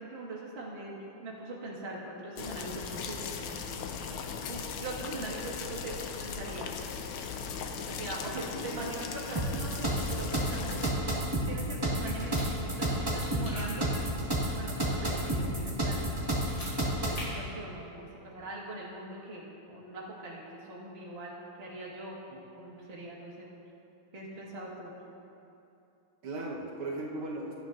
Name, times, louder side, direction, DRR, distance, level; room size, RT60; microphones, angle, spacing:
voice 1, 0.0-3.2 3.4-3.6 4.5-6.8 7.8-10.9 11.5-13.9 14.4-16.2 17.0-20.4 20.7-22.2 22.6-23.5 24.1-24.9, right 2 dB, 30° right, -4 dB, 1.7 m, -42 dB
sound 1, 2.4-10.9, left 6 dB, 75° left, 1.5 m, -38 dB
voice 2, 8.3-8.8 26.2-27.5, right 2 dB, 75° right, -3 dB, 2.0 m, -38 dB
sound 2, 9.3-17.3, right 1 dB, 15° right, 1.3 m, -30 dB
sound 3, 12.1-12.5 13.2-13.7 16.4-16.7 17.1-17.3, left 2 dB, 55° left, 3.6 m, -43 dB
16.5 x 11.0 x 2.5 m, 2.7 s
omnidirectional pair, 2.4 m